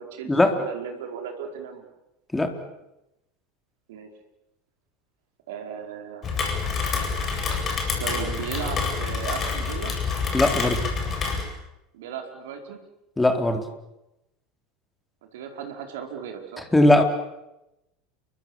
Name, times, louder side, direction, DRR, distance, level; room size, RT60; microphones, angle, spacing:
voice 1, 0.0-1.9 3.9-4.1 5.5-6.3 8.0-9.9 11.9-12.8 15.3-16.7, right 7 dB, 60° right, 4 dB, 4.8 m, -36 dB
Rain, 6.2-11.4, left 5 dB, 30° left, 7.9 m, -27 dB
voice 2, 10.3-10.8 13.2-13.6 16.7-17.0, left 1 dB, 10° left, 6 dB, 4.1 m, -19 dB
30.0 x 23.5 x 7.5 m, 0.90 s
figure-of-eight pair, 75°, 0 cm